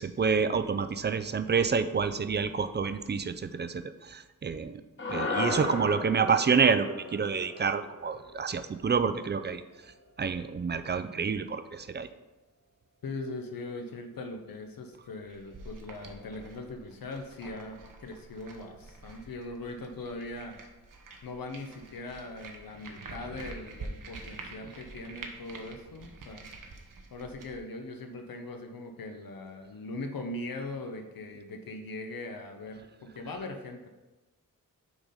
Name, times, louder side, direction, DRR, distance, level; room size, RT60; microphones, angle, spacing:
voice 1, 0.0-4.8 5.1-6.9 7.1-9.6 10.2-12.1, right 5 dB, 30° right, 11 dB, 0.4 m, -28 dB
sound 1, 5.0-9.4, left 3 dB, 35° left, 1.2 m, -36 dB
voice 2, 13.0-20.6 21.2-26.5 27.1-33.9, left 2 dB, 75° left, 4 dB, 0.8 m, -40 dB
sound 2, 15.2-27.6, right 3 dB, 65° right, 0.9 m, -47 dB
6.2 x 3.9 x 5.0 m, 1.1 s
wide cardioid pair, 85°, 35 cm